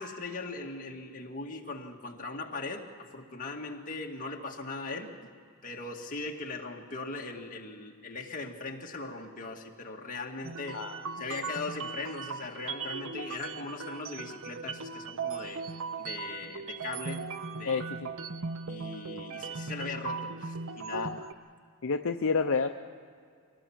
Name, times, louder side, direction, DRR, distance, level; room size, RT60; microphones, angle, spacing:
voice 1, 0.0-5.1 5.6-10.8 11.2-15.6 16.0-17.3 17.5-17.8 18.7-21.1, left 3 dB, 40° left, 0 dB, 2.0 m, -39 dB
sound 1, 10.4-21.3, right 4 dB, 65° right, 0.8 m, -38 dB
voice 2, 17.6-18.1 20.9-21.3 21.8-22.8, left 4 dB, 65° left, 5 dB, 0.7 m, -30 dB
24.0 x 17.5 x 7.3 m, 2.1 s
head